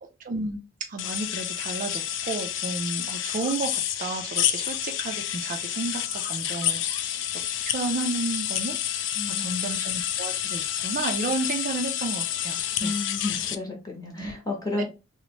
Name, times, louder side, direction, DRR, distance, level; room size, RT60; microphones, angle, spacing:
voice 1, 0.2-13.0 14.1-14.3 14.8-14.9, right 3 dB, 45° right, 0.4 m, -32 dB
sound 1, 1.0-13.6, left 11 dB, 65° left, 0.3 m, -29 dB
voice 2, 9.2-9.8 12.8-14.8, left 2 dB, 20° left, 0.9 m, -32 dB
2.8 x 2.0 x 2.9 m
head